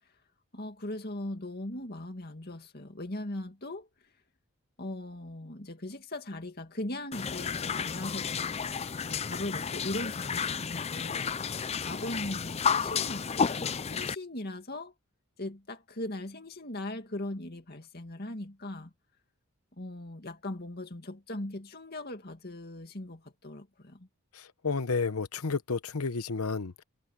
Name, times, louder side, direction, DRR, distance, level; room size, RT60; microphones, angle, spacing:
voice 1, 0.5-3.9 4.8-8.5 9.1-11.3 11.8-14.9 15.4-18.9 19.8-24.1, left 1 dB, 45° left, 2.3 m, -39 dB
sound 1, 7.1-14.1, left 6 dB, 30° left, 0.4 m, -32 dB
voice 2, 24.3-26.8, left 4 dB, 85° left, 1.0 m, -31 dB
head